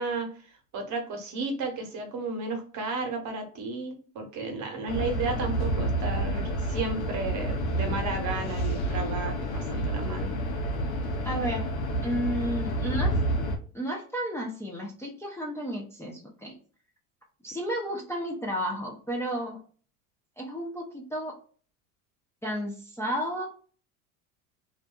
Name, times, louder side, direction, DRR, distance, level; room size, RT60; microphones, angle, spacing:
voice 1, 0.0-10.3, right 3 dB, 45° right, 4 dB, 1.0 m, -33 dB
sound 1, 4.9-13.6, right 1 dB, 90° left, 0.7 m, -29 dB
voice 2, 11.2-11.7 12.0-13.2 13.7-16.6 17.4-19.6 20.4-21.4 22.4-23.5, equal, 5° left, -2 dB, 0.5 m, -32 dB
2.5 x 2.4 x 2.2 m, 0.41 s
supercardioid pair, 95°, 40 cm